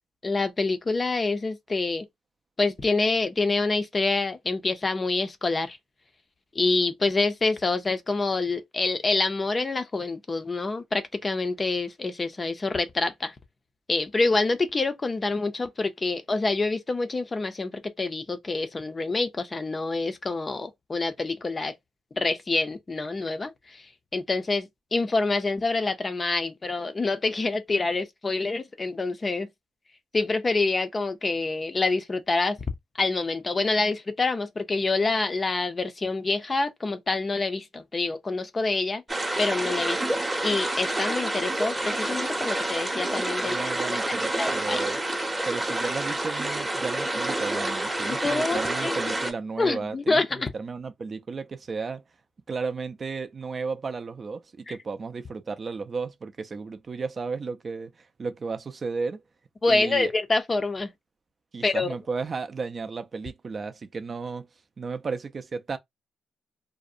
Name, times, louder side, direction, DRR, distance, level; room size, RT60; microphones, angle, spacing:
voice 1, 0.2-2.1 2.6-5.8 6.6-13.3 13.9-21.7 22.2-23.8 24.1-29.5 30.1-32.6 33.0-39.0 39.4-44.0 44.4-44.8 48.1-49.0 49.6-50.5 54.7-54.8 59.6-60.9 61.6-61.9, left 3 dB, 30° left, 0.4 m, -27 dB
sound 1, 39.1-49.3, right 1 dB, 15° right, 0.7 m, -28 dB
voice 2, 43.4-45.0 45.5-50.2 50.5-52.0 52.5-59.2 59.7-60.1 61.5-64.5 64.8-65.8, right 4 dB, 40° right, 0.3 m, -34 dB
2.5 x 2.0 x 2.4 m
cardioid pair, 90°, 0 cm